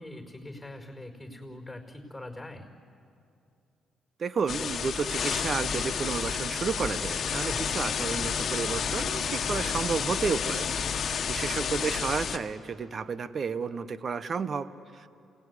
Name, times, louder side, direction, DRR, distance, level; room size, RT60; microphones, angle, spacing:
voice 1, 0.0-2.7 7.5-7.7 9.4-9.7, left 1 dB, 5° left, 2 dB, 5.0 m, -43 dB
voice 2, 4.2-15.1, right 5 dB, 45° right, 14 dB, 1.0 m, -32 dB
sound 1, 4.5-12.4, left 7 dB, 55° left, 1.4 m, -30 dB
28.0 x 19.0 x 9.8 m, 2.6 s
cardioid pair, 90°, 0 cm